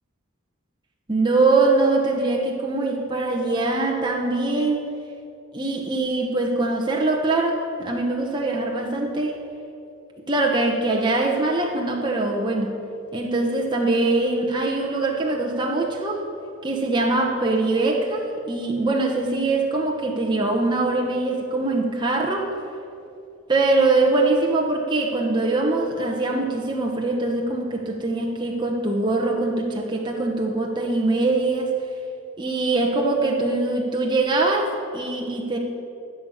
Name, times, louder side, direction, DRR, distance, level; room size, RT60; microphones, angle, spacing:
voice 1, 1.1-4.8 5.5-9.4 10.3-12.8 13.1-16.3 16.6-22.5 23.5-31.7 32.4-35.6, right 2 dB, 20° right, -1 dB, 1.1 m, -23 dB
12.5 x 6.5 x 9.8 m, 2.6 s
head